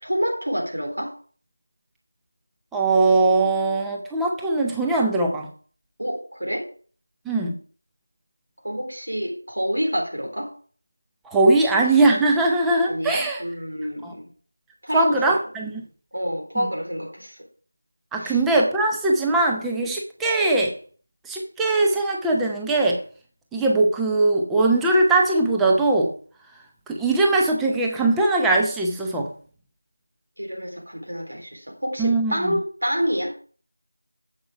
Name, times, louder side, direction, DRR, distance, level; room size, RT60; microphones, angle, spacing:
voice 1, 0.0-1.1 6.0-6.7 8.6-10.5 12.9-14.3 14.8-15.4 16.1-17.4 18.2-18.4 30.4-33.3, equal, 75° right, 3.6 m, -27 dB
voice 2, 2.7-5.5 7.3-7.5 11.3-13.4 14.0-14.1 14.9-15.8 18.1-20.7 21.3-23.0 23.5-26.1 26.9-29.3 32.0-32.6, right 2 dB, 5° right, 0.6 m, -20 dB
8.1 x 7.6 x 4.7 m
figure-of-eight pair, 170°, 0 cm